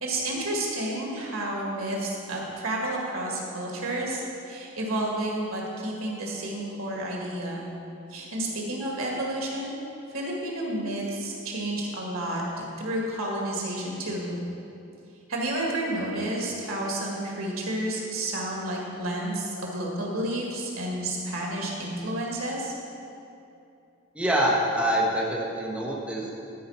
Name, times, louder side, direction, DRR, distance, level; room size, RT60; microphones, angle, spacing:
voice 1, 0.0-7.7 8.1-9.8 10.1-14.4 15.3-22.7, right 1 dB, 85° right, -2 dB, 1.9 m, -31 dB
voice 2, 24.1-26.4, right 1 dB, 5° right, -5 dB, 1.1 m, -25 dB
12.5 x 4.8 x 5.6 m, 2.7 s
head